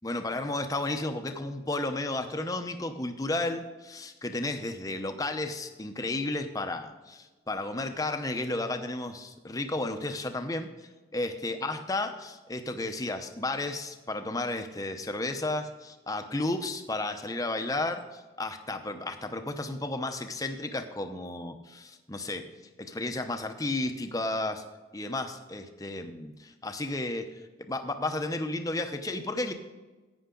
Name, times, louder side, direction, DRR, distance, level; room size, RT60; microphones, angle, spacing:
voice 1, 0.0-10.7 11.1-22.5 22.8-24.6 24.9-27.3 27.6-29.5, left 2 dB, 20° left, 7 dB, 0.8 m, -33 dB
11.5 x 9.3 x 3.8 m, 1.2 s
head